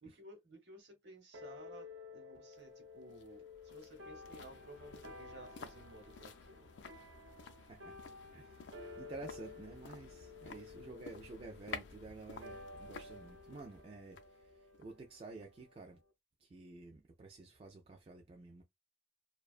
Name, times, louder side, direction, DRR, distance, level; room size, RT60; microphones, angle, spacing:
voice 1, 0.0-6.7 10.7-10.9, right 1 dB, 65° right, 0.9 m, -56 dB
sound 1, 1.3-16.1, left 3 dB, 85° right, 0.6 m, -54 dB
sound 2, 2.5-15.7 16.0-16.1, left 5 dB, 75° left, 0.4 m, -53 dB
voice 2, 8.3-8.7 9.0-14.5 14.8-16.0 16.4-18.6, right 3 dB, 30° right, 0.3 m, -51 dB
2.5 x 2.2 x 2.4 m
head